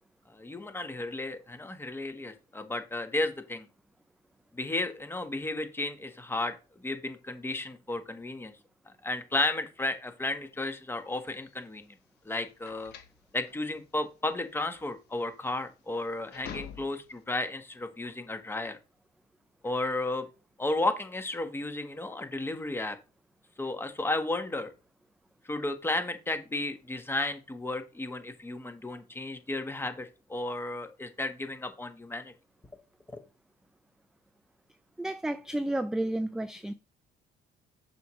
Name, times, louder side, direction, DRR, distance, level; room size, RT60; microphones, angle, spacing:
voice 1, 0.3-3.7 4.5-6.5 6.8-8.5 9.0-11.9 12.2-12.9 13.3-18.8 19.6-20.3 20.6-23.0 23.6-24.7 25.5-32.3 33.1-33.2, left 2 dB, 15° left, 1.2 m, -33 dB
sound 1, 11.3-17.2, left 8 dB, 75° left, 1.3 m, -48 dB
voice 2, 35.0-36.7, right 1 dB, 5° right, 0.3 m, -31 dB
6.8 x 6.1 x 3.1 m
cardioid pair, 110°, 17 cm